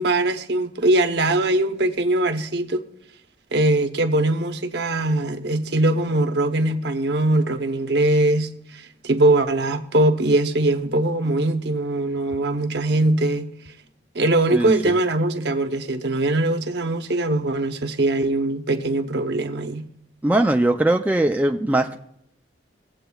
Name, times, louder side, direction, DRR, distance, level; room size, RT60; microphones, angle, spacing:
voice 1, 0.0-2.8 3.5-13.5 14.1-19.8, right 2 dB, 70° right, 0.8 m, -21 dB
voice 2, 14.5-14.9 20.2-22.0, right 1 dB, 10° right, 0.3 m, -20 dB
19.5 x 7.7 x 2.3 m
head